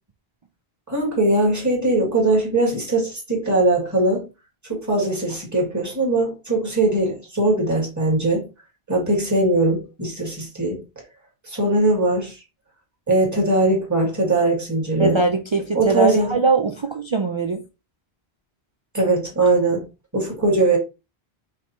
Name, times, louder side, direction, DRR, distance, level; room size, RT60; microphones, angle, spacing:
voice 1, 0.9-4.3 4.7-8.5 8.9-10.8 11.4-12.4 13.1-15.2 15.7-16.3 18.9-19.9 20.1-20.8, right 2 dB, 15° right, 1.7 m, -20 dB
voice 2, 15.0-17.6, right 3 dB, 50° right, 0.3 m, -21 dB
5.2 x 3.4 x 2.8 m
omnidirectional pair, 1.1 m